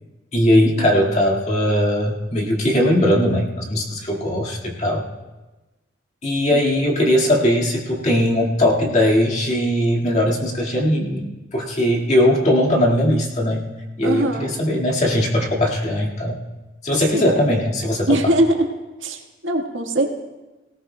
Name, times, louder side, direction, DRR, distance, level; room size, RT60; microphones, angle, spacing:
voice 1, 0.3-5.0 6.2-11.3 11.5-13.7 14.0-16.4 16.8-18.2, left 1 dB, 35° left, -1 dB, 2.0 m, -19 dB
voice 2, 14.0-14.5 16.9-17.5 18.0-18.7 19.0-20.1, right 1 dB, 85° right, 2 dB, 1.6 m, -22 dB
18.5 x 18.0 x 2.3 m, 1.1 s
head